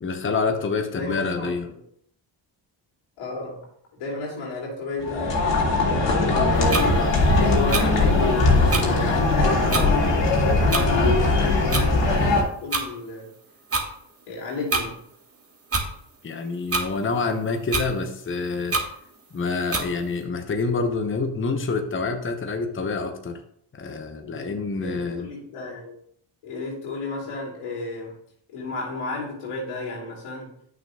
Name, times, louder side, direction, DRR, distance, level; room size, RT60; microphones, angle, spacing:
voice 1, 0.0-1.7 16.2-18.8 19.3-23.4 23.7-25.3, left 4 dB, 25° left, 5 dB, 0.9 m, -27 dB
voice 2, 1.0-1.8 3.2-3.6 3.9-5.5 5.8-13.3 14.3-15.0 24.2-25.9 26.4-28.2 28.5-30.5, left 2 dB, 90° left, -3 dB, 2.9 m, -32 dB
sound 1, 5.0-12.4, left 2 dB, 60° left, 2.4 m, -20 dB
sound 2, 6.7-6.8 7.7-7.8 8.7-8.8 9.7-9.9 10.7-10.9 11.7-11.9 12.7-12.8 13.7-13.9 14.7-14.8 15.7-15.9 16.7-16.9 17.7-17.9 18.7-18.9 19.7-19.8, right 3 dB, 30° right, 1.6 m, -24 dB
9.2 x 6.1 x 2.4 m, 0.67 s
supercardioid pair, 65°, 49 cm